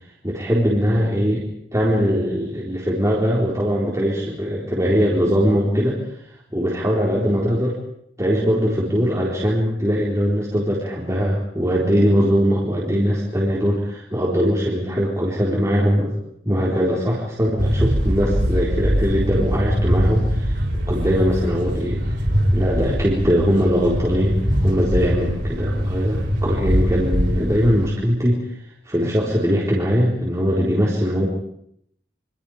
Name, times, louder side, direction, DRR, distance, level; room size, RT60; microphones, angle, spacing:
voice 1, 0.2-1.5 1.7-6.0 6.5-7.7 8.2-16.2 16.5-20.6 20.9-22.0 22.5-28.4 28.9-31.3, equal, 15° right, -5 dB, 4.3 m, -21 dB
sound 1, 17.6-27.9, equal, 80° right, 4.1 m, -22 dB
28.0 x 26.0 x 5.2 m, 0.72 s
head